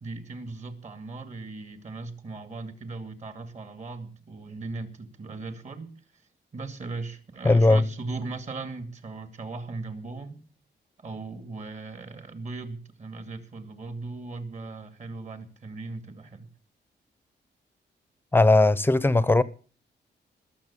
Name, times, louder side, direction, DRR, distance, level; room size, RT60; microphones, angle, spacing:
voice 1, 0.0-5.9 6.5-10.4 11.0-16.5, right 3 dB, 40° right, 2.5 m, -38 dB
voice 2, 7.4-7.8 18.3-19.4, left 2 dB, 10° left, 0.9 m, -18 dB
21.0 x 7.3 x 8.6 m
wide cardioid pair, 155°, 18 cm